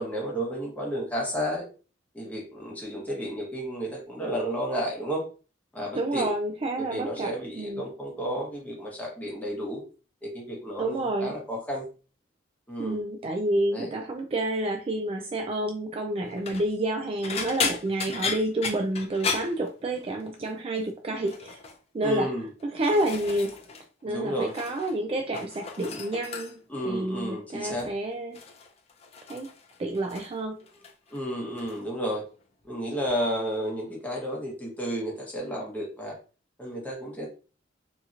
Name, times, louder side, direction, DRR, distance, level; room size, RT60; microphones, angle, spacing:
voice 1, 0.0-1.7 2.1-5.2 5.7-6.3 6.8-9.8 10.2-11.9 12.7-13.0 13.7-13.9 22.0-22.5 24.0-24.5 26.7-27.9 31.1-32.3 32.6-36.2 36.6-37.3, equal, 10° left, 1.0 m, -32 dB
voice 2, 5.9-7.9 10.8-11.3 12.8-21.6 21.9-22.3 22.6-23.6 24.0-28.4 29.3-29.5 29.8-30.6, right 1 dB, 35° right, 0.3 m, -29 dB
sound 1, 16.3-16.7 17.2-20.3 20.5-20.9 21.2-21.8 22.4-23.9 24.1-25.0 25.2-26.8 27.6-27.9 28.3-30.4 30.7-31.2 31.6-31.8 33.1-33.2, left 5 dB, 35° left, 0.5 m, -35 dB
2.8 x 2.8 x 2.4 m
head